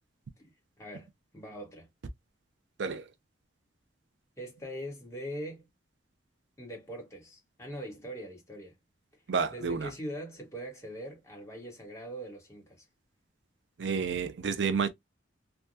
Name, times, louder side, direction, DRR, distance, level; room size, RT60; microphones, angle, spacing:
voice 1, 0.8-1.1 1.3-1.9 4.4-5.7 6.6-8.8 9.5-12.9, equal, 15° left, 1.2 m, -42 dB
voice 2, 9.3-9.9 13.8-14.9, right 5 dB, 70° right, 0.4 m, -30 dB
3.4 x 2.2 x 2.6 m
head